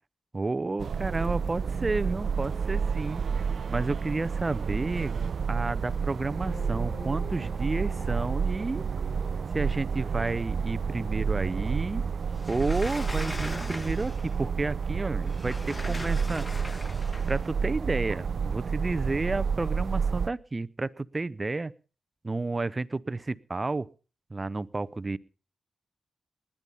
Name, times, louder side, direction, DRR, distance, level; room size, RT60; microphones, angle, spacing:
voice 1, 0.3-3.2 3.7-5.1 5.5-8.8 9.5-12.0 12.5-16.5 17.3-21.7 22.2-23.9 24.3-25.2, right 3 dB, 35° right, 18 dB, 0.7 m, -31 dB
sound 1, 0.8-20.3, right 6 dB, 65° right, 0.6 m, -30 dB
sound 2, 6.2-14.5 14.8-15.2, left 3 dB, 55° left, 3.2 m, -50 dB
Sliding door, 12.4-14.3 15.3-17.4, left 1 dB, 20° left, 2.1 m, -40 dB
19.5 x 10.0 x 5.6 m, 0.37 s
cardioid pair, 55°, 0 cm